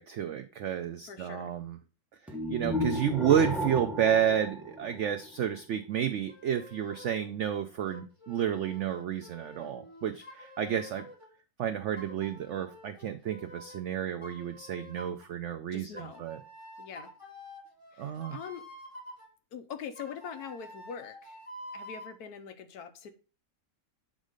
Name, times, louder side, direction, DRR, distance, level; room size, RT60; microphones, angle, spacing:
voice 1, 0.0-1.8 2.5-11.1 11.6-16.4 18.0-18.4, right 9 dB, 80° right, 8 dB, 0.6 m, -31 dB
voice 2, 1.1-1.5 15.7-16.2 16.8-17.1 17.9-18.6 19.5-21.4 21.7-23.1, left 7 dB, 70° left, 8 dB, 1.2 m, -43 dB
sound 1, 2.3-5.4, left 1 dB, ahead, 0.4 m, -34 dB
sound 2, 6.3-7.3 7.9-11.3 12.0-13.8 14.2-15.3 16.0-19.3 20.0-22.2, equal, 15° left, 2.7 m, -48 dB
7.3 x 3.8 x 5.0 m, 0.37 s
omnidirectional pair, 1.8 m